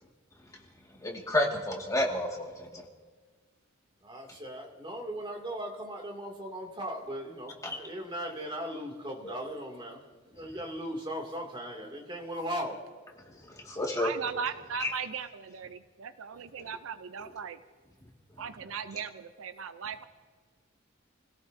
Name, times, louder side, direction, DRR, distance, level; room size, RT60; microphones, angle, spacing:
voice 1, 0.9-2.9 7.6-7.8 9.2-9.3 10.4-10.6 13.2-14.1 14.8-14.9 16.6-16.7 17.2-17.3 18.0-18.7, left 1 dB, 15° left, 2.0 m, -32 dB
voice 2, 4.0-10.0 10.3-12.8, equal, 25° right, 2.5 m, -38 dB
voice 3, 14.0-17.6 18.4-20.0, right 6 dB, 70° right, 0.6 m, -38 dB
29.0 x 17.0 x 2.7 m
head